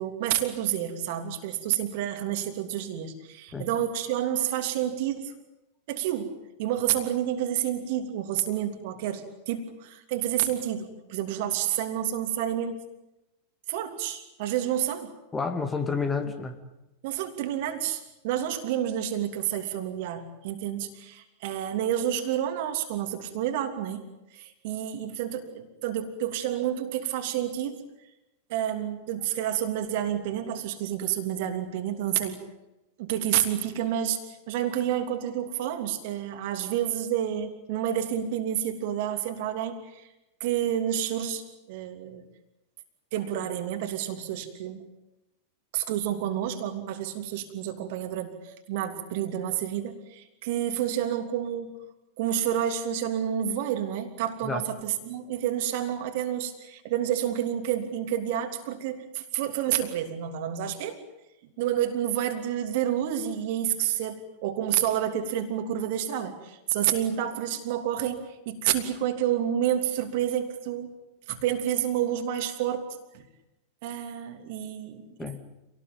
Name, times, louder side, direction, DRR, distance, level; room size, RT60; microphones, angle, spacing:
voice 1, 0.0-5.3 5.9-6.3 6.6-12.8 13.7-15.1 17.0-24.0 24.3-27.8 28.5-32.4 33.0-40.1 40.4-42.2 43.1-44.8 45.7-51.7 52.2-61.0 61.6-70.9 71.3-72.9 73.1-73.3 73.8-75.3, right 10 dB, 50° right, 7 dB, 3.0 m, -29 dB
voice 2, 15.3-16.6 54.4-54.6 75.2-75.4, left 4 dB, 15° left, 6 dB, 2.5 m, -30 dB
27.5 x 19.0 x 9.3 m, 0.95 s
figure-of-eight pair, 90°, 0 cm